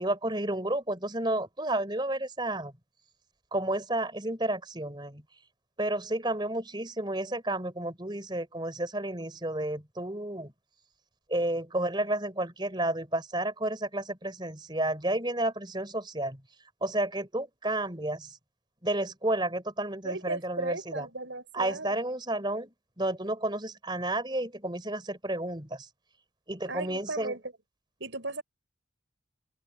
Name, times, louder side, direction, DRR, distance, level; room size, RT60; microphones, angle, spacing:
voice 1, 0.0-2.7 3.5-5.2 5.8-10.5 11.3-16.4 16.8-18.4 18.8-21.1 21.5-25.9 26.5-27.3, right 1 dB, 25° right, 4.1 m, -31 dB
voice 2, 20.0-21.9 26.7-27.4 28.0-28.4, right 2 dB, 90° right, 5.8 m, -36 dB
open air
head